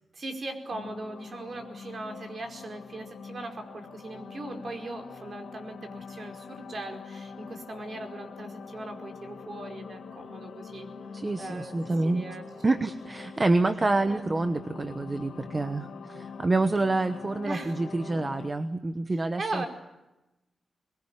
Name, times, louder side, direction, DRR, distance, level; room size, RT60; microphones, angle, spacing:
voice 1, 0.1-10.9 11.4-11.8 12.0-12.7 14.0-14.3 17.4-17.8 19.4-19.7, right 2 dB, 45° right, 5 dB, 4.9 m, -39 dB
sound 1, 0.7-18.5, left 5 dB, 90° left, 2.6 m, -44 dB
voice 2, 11.1-12.3 12.6-19.6, right 2 dB, 25° right, 10 dB, 1.1 m, -27 dB
23.0 x 22.5 x 9.9 m, 0.99 s
wide cardioid pair, 155°, 0 cm